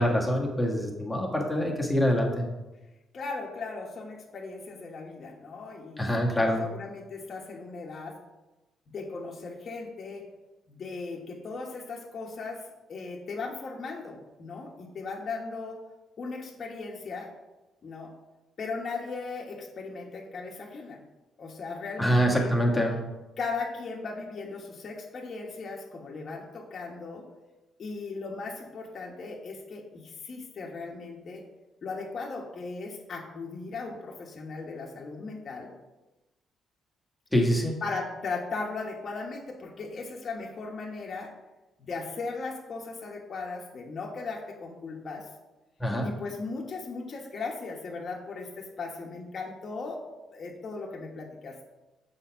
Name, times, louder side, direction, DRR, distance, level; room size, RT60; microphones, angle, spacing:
voice 1, 0.0-2.5 6.0-6.6 22.0-23.0 37.3-37.7 45.8-46.1, equal, 10° left, -1 dB, 1.6 m, -25 dB
voice 2, 3.1-8.2 8.9-10.3 10.7-12.6 12.9-15.8 16.2-17.3 17.8-18.1 18.6-21.0 21.4-22.5 23.4-27.2 27.8-31.4 31.8-35.7 37.8-41.3 41.8-45.3 46.0-50.0 50.3-51.6, left 4 dB, 50° left, -1 dB, 1.3 m, -37 dB
7.2 x 4.3 x 5.7 m, 1.1 s
cardioid pair, 90°, 0 cm